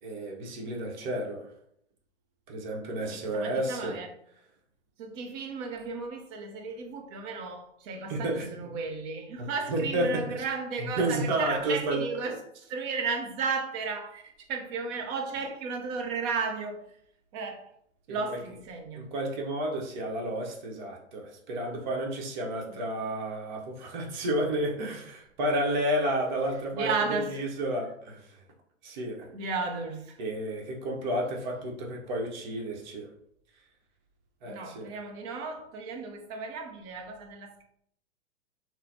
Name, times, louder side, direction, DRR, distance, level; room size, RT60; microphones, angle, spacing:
voice 1, 0.0-1.5 2.5-3.9 8.1-8.6 9.4-10.1 10.8-12.0 18.1-18.4 18.9-26.9 27.3-28.4 28.8-29.3 30.2-33.1 34.4-34.9, right 1 dB, 45° right, 0.8 m, -31 dB
voice 2, 3.1-4.1 5.0-12.4 12.7-17.0 17.3-17.7 18.1-19.1 26.7-27.4 29.3-30.2 34.4-37.6, right 4 dB, 25° right, 0.5 m, -34 dB
3.8 x 2.0 x 2.7 m
figure-of-eight pair, 110°, 34 cm